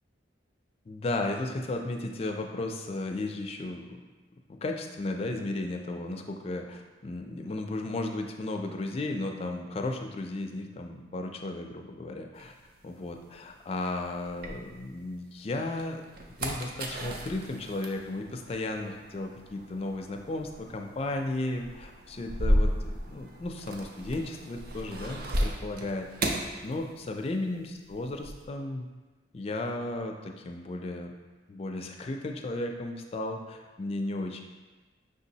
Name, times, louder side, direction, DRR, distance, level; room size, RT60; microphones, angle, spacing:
voice 1, 0.9-4.0 4.5-12.5 12.8-16.0 16.4-26.3 26.6-28.9 29.3-31.1 31.5-34.4, left 2 dB, 35° left, 3 dB, 0.3 m, -34 dB
sound 1, 12.4-15.2 15.6-27.4 27.6-28.4, equal, 55° right, 0.5 m, -34 dB
5.8 x 3.0 x 2.7 m, 1.3 s
head